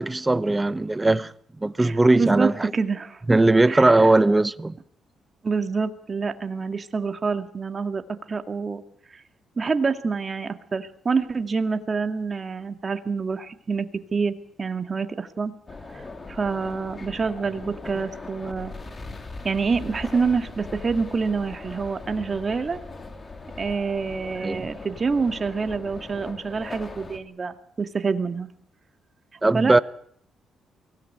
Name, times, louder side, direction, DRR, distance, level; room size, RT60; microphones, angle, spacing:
voice 1, 0.0-1.3 1.6-2.7 3.3-4.8 24.4-24.7 29.4-29.8, right 2 dB, 15° right, 0.9 m, -19 dB
voice 2, 1.8-3.2 3.7-4.1 5.4-8.0 8.3-8.8 9.1-9.2 9.6-15.5 15.9-18.7 19.4-22.8 23.6-28.5 29.5-29.8, right 4 dB, 35° right, 2.0 m, -27 dB
sound 1, 15.7-27.2, left 3 dB, 30° left, 3.1 m, -40 dB
23.5 x 17.0 x 9.3 m
cardioid pair, 90°, 0 cm